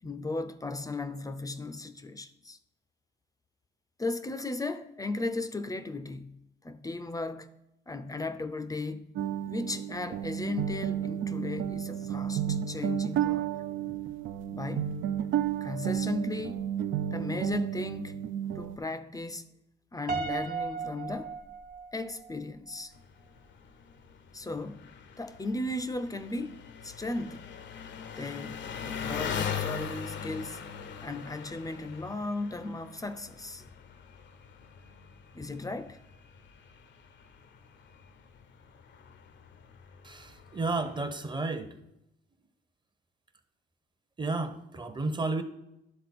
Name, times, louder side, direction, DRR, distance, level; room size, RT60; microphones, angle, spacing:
voice 1, 0.0-2.6 4.0-6.4 6.6-7.5 7.9-9.1 9.5-13.5 13.9-14.0 14.5-15.0 15.6-16.7 17.1-18.2 18.5-19.5 19.9-21.4 21.9-22.9 24.3-24.9 25.2-27.4 28.2-28.6 28.8-30.6 31.0-33.7 35.3-36.0, left 2 dB, 15° left, 0.5 m, -36 dB
sound 1, 9.2-18.8, right 10 dB, 75° right, 0.4 m, -32 dB
Piano, 20.1-22.3, right 5 dB, 45° right, 1.4 m, -35 dB
Engine, 22.9-41.1, left 7 dB, 65° left, 0.7 m, -41 dB
voice 2, 40.0-41.8 44.2-45.4, right 3 dB, 20° right, 0.8 m, -32 dB
11.0 x 3.8 x 4.2 m
cardioid pair, 90°, 20 cm